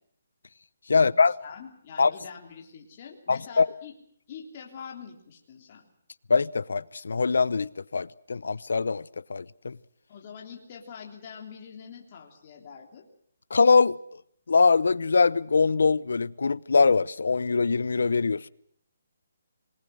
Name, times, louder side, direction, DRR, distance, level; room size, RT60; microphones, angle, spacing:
voice 1, 0.9-1.3 2.0-2.1 3.3-3.7 6.3-9.0 9.3-9.8 13.5-14.0 14.5-18.5, left 4 dB, 75° left, 0.8 m, -22 dB
voice 2, 1.4-3.9 4.3-5.9 10.1-13.0, left 6 dB, 25° left, 3.3 m, -44 dB
26.5 x 19.5 x 6.3 m
hypercardioid pair, 180°, 0 cm